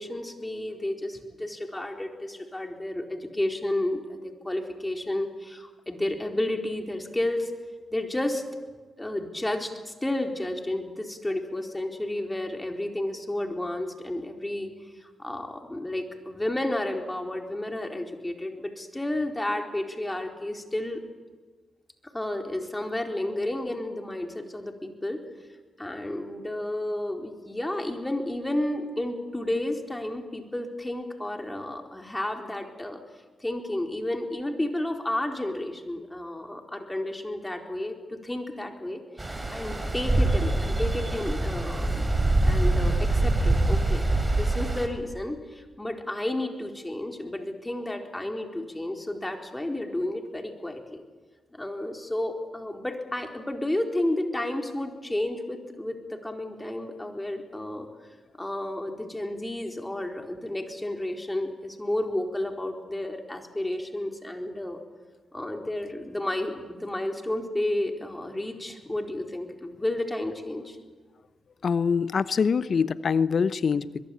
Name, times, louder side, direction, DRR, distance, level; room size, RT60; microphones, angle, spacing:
voice 1, 0.0-7.5 7.9-8.4 9.0-14.7 15.0-21.0 22.1-25.2 25.8-33.0 33.4-51.0 51.5-57.9 58.4-64.8 65.3-70.8, left 1 dB, 15° left, 3 dB, 4.2 m, -31 dB
Stream, 39.2-44.9, right 2 dB, 25° right, 4.9 m, -24 dB
voice 2, 71.6-74.1, left 6 dB, 60° left, 16 dB, 0.8 m, -24 dB
23.0 x 22.0 x 8.7 m, 1.4 s
supercardioid pair, 40°, 0 cm